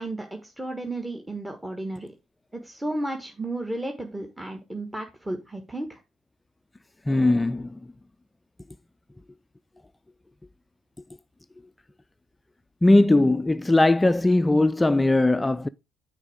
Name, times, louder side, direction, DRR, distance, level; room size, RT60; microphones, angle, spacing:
voice 1, 0.0-2.1 2.5-6.0, right 1 dB, 10° right, 1.5 m, -33 dB
voice 2, 7.1-7.8 12.8-15.7, left 2 dB, 15° left, 0.4 m, -19 dB
9.8 x 4.4 x 4.9 m
figure-of-eight pair, 50°, 0 cm